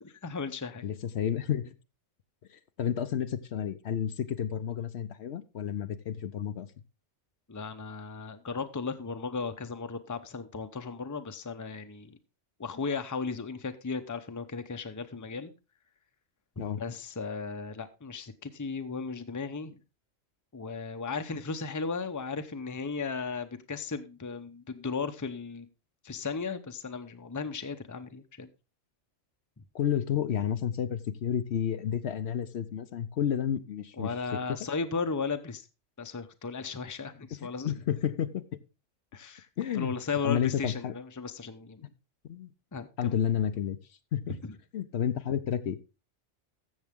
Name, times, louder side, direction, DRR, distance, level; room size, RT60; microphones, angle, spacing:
voice 1, 0.0-0.8 7.5-12.2 12.6-15.5 16.6-19.8 20.5-25.7 26.0-28.5 29.6-29.7 34.0-35.7 36.0-37.7 39.1-39.5 39.7-41.9 42.7-43.1 44.4-44.6, left 4 dB, 20° left, 8 dB, 0.7 m, -36 dB
voice 2, 0.8-1.7 2.5-6.7 16.6-16.8 29.7-34.1 34.5-34.6 37.4-38.4 39.6-39.9 40.2-40.9 42.2-42.5 43.0-44.4 44.7-45.8, left 9 dB, 65° left, 11 dB, 0.9 m, -31 dB
14.0 x 7.2 x 3.6 m, 0.29 s
omnidirectional pair, 1.2 m